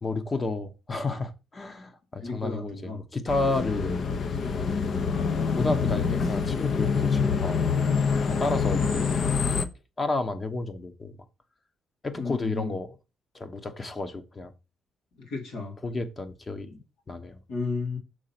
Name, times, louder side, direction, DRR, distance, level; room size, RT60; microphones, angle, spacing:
voice 1, 0.0-4.0 5.5-7.7 8.3-9.0 10.0-11.2 12.0-13.0 13.3-14.5 15.8-16.7 17.1-17.4, left 2 dB, 30° left, 1.0 m, -31 dB
voice 2, 2.2-3.0 12.2-12.7 15.2-15.8 17.5-18.0, left 4 dB, 85° left, 2.4 m, -33 dB
sound 1, 3.3-9.7, left 5 dB, 55° left, 0.7 m, -26 dB
6.5 x 3.9 x 5.8 m
cardioid pair, 90°, 0 cm